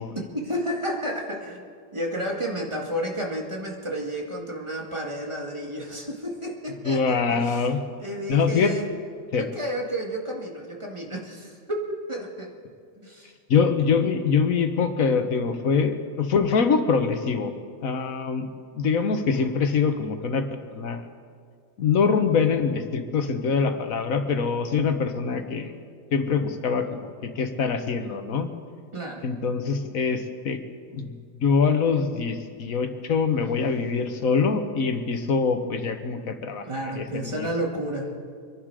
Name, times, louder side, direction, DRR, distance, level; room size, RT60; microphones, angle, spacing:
voice 1, 0.3-1.6 1.9-7.7 8.0-8.9 9.4-11.8 12.1-12.5 13.0-13.3 28.9-29.3 36.6-38.1, equal, 20° right, -1 dB, 2.2 m, -31 dB
voice 2, 6.8-7.8 8.3-8.7 9.3-9.4 13.5-17.5 17.8-18.4 18.7-20.4 20.7-21.0 21.8-25.7 26.1-27.1 27.4-28.5 29.2-30.6 30.9-31.2 31.4-36.6 36.9-37.5, left 5 dB, 75° left, 7 dB, 1.5 m, -24 dB
26.0 x 11.0 x 4.9 m, 2.1 s
omnidirectional pair, 1.4 m